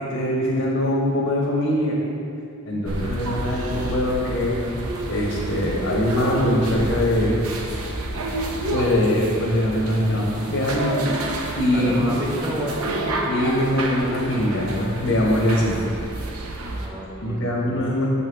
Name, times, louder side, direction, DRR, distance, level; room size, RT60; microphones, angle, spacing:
voice 1, 0.0-2.0 2.6-4.7 5.1-7.4 8.7-11.0 11.3-11.9 13.3-15.8 17.2-18.1, left 1 dB, 70° left, -4 dB, 1.0 m, -22 dB
sound 1, 2.9-16.9, right 1 dB, 85° right, 0.7 m, -29 dB
voice 2, 11.7-13.2 16.6-17.5, equal, 15° right, -3 dB, 1.0 m, -29 dB
7.0 x 5.5 x 3.4 m, 2.6 s
head